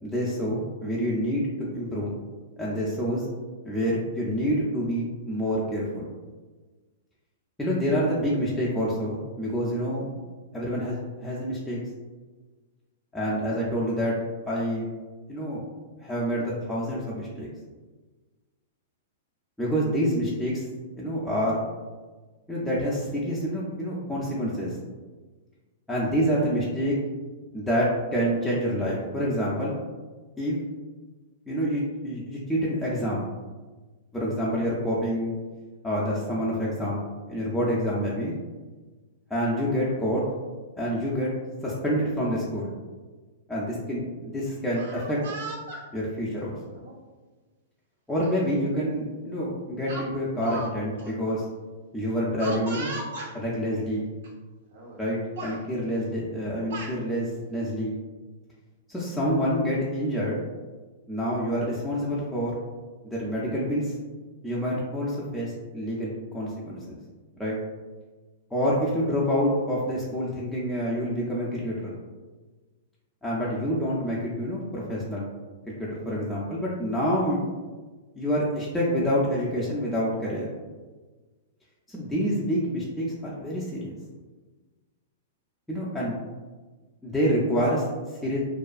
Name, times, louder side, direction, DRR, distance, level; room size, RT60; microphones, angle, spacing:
voice 1, 0.0-2.1 2.6-3.3 3.6-6.0 7.6-10.1 10.5-11.8 13.1-14.1 14.5-14.9 15.3-15.6 16.0-17.5 19.6-20.6 21.0-21.6 22.5-24.8 25.9-26.9 27.5-29.8 30.4-30.6 31.5-33.2 34.1-35.3 35.8-37.0 37.3-38.4 39.3-40.2 40.8-41.3 41.6-42.7 43.5-45.2 45.9-46.6 48.1-51.4 51.9-52.9 53.3-54.1 55.0-57.9 58.9-60.4 61.1-62.6 63.1-63.9 64.4-67.0 67.4-67.6 68.5-71.9 73.2-75.3 75.8-77.4 78.1-80.5 81.9-83.9 85.7-86.2 87.0-88.4, equal, 5° left, -7 dB, 0.4 m, -27 dB
Speech, 44.6-45.8 46.7-47.0 48.2-48.3 48.7-48.9 49.9-50.7 51.0-51.1 52.4-53.3 54.2-54.3 54.7-55.1 55.4-55.6 56.4-57.0, right 2 dB, 75° right, 0.6 m, -37 dB
2.3 x 2.3 x 2.4 m, 1.3 s
hypercardioid pair, 130°, 0 cm